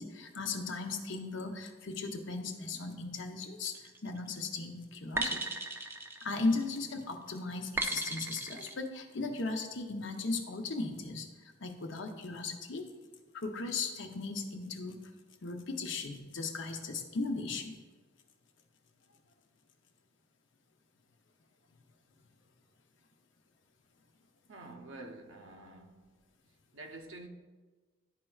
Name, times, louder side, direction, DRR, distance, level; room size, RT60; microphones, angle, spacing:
voice 1, 0.0-5.5 6.2-11.3 11.6-12.8 13.3-15.0 15.4-17.7, left 3 dB, 60° left, 0.7 m, -37 dB
sound 1, 3.6-4.1 5.2-6.8 7.8-8.7, right 2 dB, 10° right, 0.3 m, -36 dB
voice 2, 24.5-26.2 26.7-27.3, right 2 dB, 70° right, 0.7 m, -48 dB
11.5 x 4.4 x 2.3 m
head